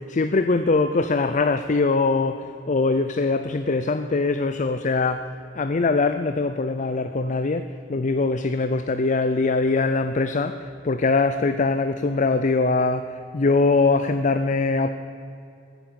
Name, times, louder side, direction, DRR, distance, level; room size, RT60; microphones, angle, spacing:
voice 1, 0.0-5.3 5.5-14.9, left 3 dB, 40° left, 10 dB, 0.5 m, -22 dB
15.0 x 9.5 x 8.7 m, 2.7 s
head